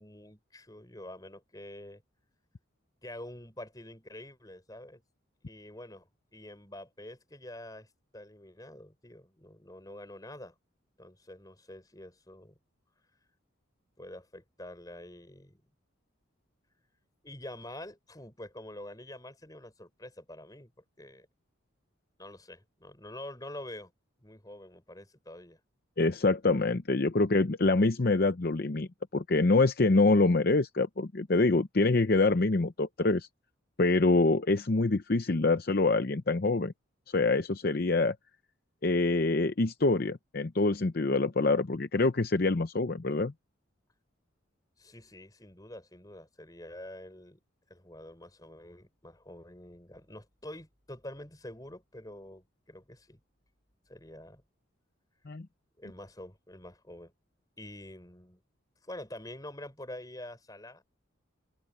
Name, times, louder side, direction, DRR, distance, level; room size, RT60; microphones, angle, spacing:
voice 1, 0.0-2.0 3.0-5.0 5.5-10.5 11.0-12.6 14.0-15.6 17.2-20.7 21.0-21.3 22.2-23.9 24.2-25.6 44.8-47.4 47.7-53.2 53.9-54.4 55.8-57.1 57.6-58.4 58.8-60.8, left 1 dB, 20° left, 4.8 m, -46 dB
voice 2, 26.0-33.3 33.8-36.7 37.1-38.2 38.8-43.3 55.3-55.5, left 3 dB, 50° left, 0.7 m, -25 dB
head